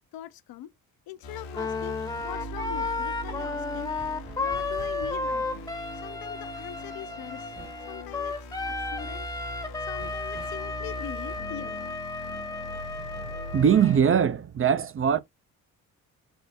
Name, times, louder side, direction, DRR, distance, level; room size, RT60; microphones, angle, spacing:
voice 1, 0.1-0.7 1.1-3.9 4.4-5.7 6.0-7.5 7.9-8.4 8.7-9.3 9.9-11.8, left 12 dB, 65° left, 0.5 m, -42 dB
sound 1, 1.2-14.0, equal, 90° left, 0.8 m, -40 dB
Wind instrument woodwind instrument, 1.5-14.0, left 3 dB, 10° left, 0.7 m, -33 dB
sound 2, 4.0-5.3 7.6-7.9 10.0-10.7, right 2 dB, 90° right, 1.2 m, -48 dB
voice 2, 13.2-15.2, right 8 dB, 35° right, 0.5 m, -22 dB
3.6 x 2.1 x 2.7 m
hypercardioid pair, 50°, 39 cm